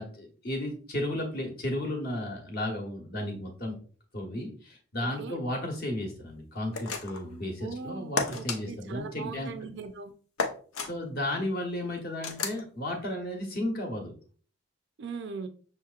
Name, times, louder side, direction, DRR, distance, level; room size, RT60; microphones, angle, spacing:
voice 1, 0.0-3.8 4.1-9.5 10.8-14.1, left 1 dB, 45° left, 1 dB, 1.0 m, -34 dB
voice 2, 5.0-5.4 7.6-10.1 15.0-15.5, right 4 dB, 55° right, 8 dB, 0.4 m, -40 dB
sound 1, 6.7-7.3 8.2-8.6 10.4-10.9 12.2-12.6, left 4 dB, 80° left, 0.6 m, -31 dB
5.8 x 2.9 x 2.4 m, 0.42 s
head